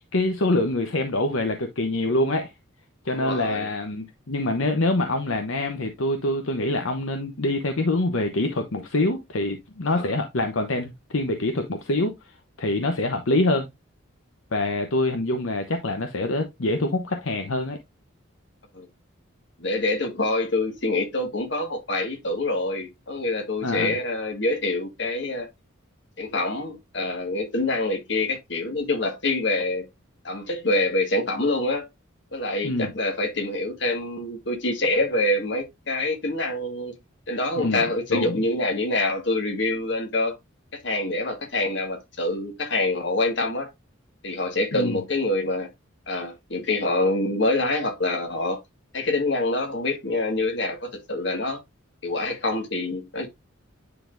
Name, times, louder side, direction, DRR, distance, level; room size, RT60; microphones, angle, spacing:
voice 1, 0.1-2.5 3.0-13.7 14.5-17.8 23.6-24.0 32.6-32.9 37.6-37.8 38.1-38.4 44.7-45.0, left 2 dB, 75° left, 0.9 m, -25 dB
voice 2, 3.1-3.7 9.9-10.1 18.7-18.9 19.6-25.5 26.2-29.8 30.2-31.9 32.3-36.9 37.3-40.3 40.7-43.7 44.2-45.7 46.1-48.6 48.9-51.6 52.0-53.3, left 2 dB, 55° left, 1.6 m, -26 dB
9.7 x 4.0 x 2.5 m
head